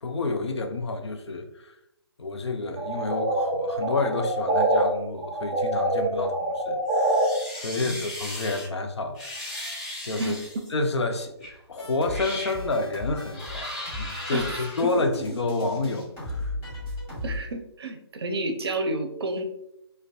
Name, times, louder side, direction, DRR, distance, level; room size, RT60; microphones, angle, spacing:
voice 1, 0.0-1.7 2.2-9.3 10.0-10.3 10.7-16.5, left 3 dB, 75° left, 5 dB, 0.4 m, -29 dB
sound 1, 2.8-4.8 5.2-7.2, right 1 dB, 20° right, 0.6 m, -25 dB
sound 2, 6.9-8.7 9.1-10.7 11.4-11.6 12.0-12.6 13.3-14.8, left 1 dB, 45° left, 1.4 m, -37 dB
sound 3, 11.8-17.4, left 1 dB, 15° left, 0.9 m, -36 dB
voice 2, 14.3-14.9 17.2-19.4, right 2 dB, 65° right, 5 dB, 0.5 m, -30 dB
2.5 x 2.1 x 2.3 m, 0.81 s
figure-of-eight pair, 145°, 14 cm